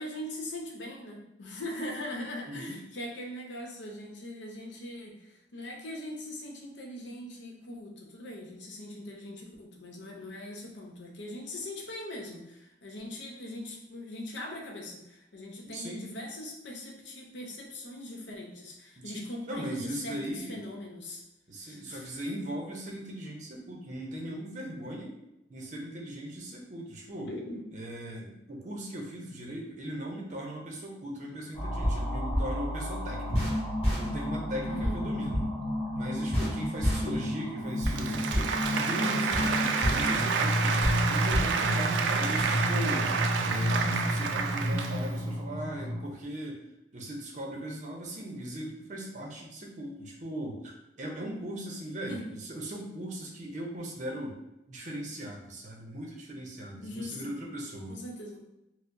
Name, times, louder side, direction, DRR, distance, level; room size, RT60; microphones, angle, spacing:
voice 1, 0.0-21.2 21.6-22.0 27.3-27.6 34.7-35.0 52.1-52.4 56.8-57.2 57.9-58.5, left 1 dB, 85° left, -1 dB, 0.7 m, -41 dB
voice 2, 2.5-2.8 15.6-16.0 19.0-20.6 21.5-25.2 25.5-27.3 27.7-33.6 34.0-35.5 35.9-40.8 41.1-43.1 43.4-46.6 46.9-52.2 52.5-54.4 54.7-58.0, right 1 dB, 40° right, 0 dB, 0.6 m, -38 dB
sound 1, 31.5-46.0, equal, 30° left, 1.4 m, -30 dB
Applause, 37.8-45.2, right 5 dB, 85° right, 0.3 m, -30 dB
4.5 x 2.0 x 2.6 m, 0.88 s
head